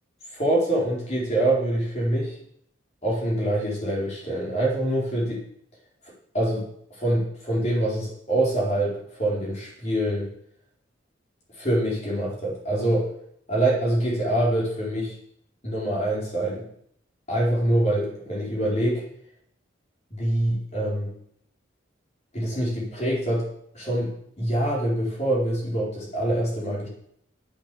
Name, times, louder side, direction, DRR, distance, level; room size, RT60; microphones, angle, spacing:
voice 1, 0.3-2.3 3.0-5.4 6.3-6.6 7.0-10.3 11.6-13.1 13.5-15.2 15.6-16.6 17.3-19.0 20.1-21.1 22.3-23.4 23.7-24.1 24.4-26.9, right 1 dB, 35° left, -4 dB, 4.5 m, -25 dB
10.0 x 8.3 x 6.9 m, 0.69 s
head